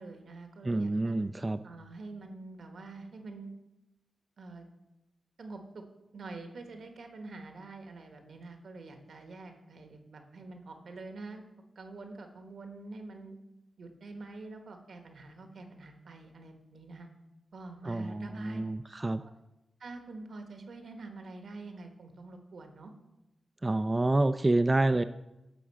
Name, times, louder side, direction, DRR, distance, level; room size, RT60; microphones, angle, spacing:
voice 1, 0.0-1.1 1.6-3.5 4.4-4.7 5.4-5.8 6.1-11.4 11.7-13.4 13.8-17.1 17.5-18.6 19.0-19.3 19.8-22.9, right 3 dB, 75° right, 5 dB, 1.2 m, -46 dB
voice 2, 0.6-1.6 17.8-19.2 23.6-25.0, right 2 dB, 25° right, 10 dB, 0.3 m, -28 dB
10.0 x 3.8 x 7.3 m, 0.93 s
cardioid pair, 60°, 0 cm